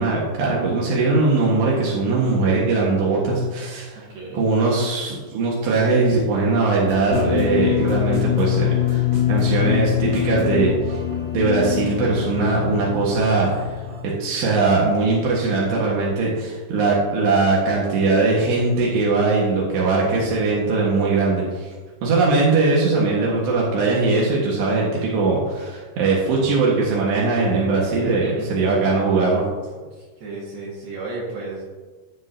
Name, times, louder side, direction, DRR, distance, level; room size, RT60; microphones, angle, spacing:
voice 1, 0.0-4.1 4.3-9.0 9.3-11.0 11.3-13.8 14.0-21.7 22.0-29.4, right 3 dB, 85° right, -4 dB, 3.7 m, -20 dB
voice 2, 4.1-4.5 28.0-28.5 29.9-31.6, right 2 dB, 65° right, -6 dB, 3.4 m, -33 dB
sound 1, 6.9-14.0, equal, 40° right, 2.0 m, -37 dB
sound 2, 7.1-14.3, left 13 dB, 80° left, 2.3 m, -24 dB
18.0 x 6.7 x 2.8 m, 1.3 s
omnidirectional pair, 4.8 m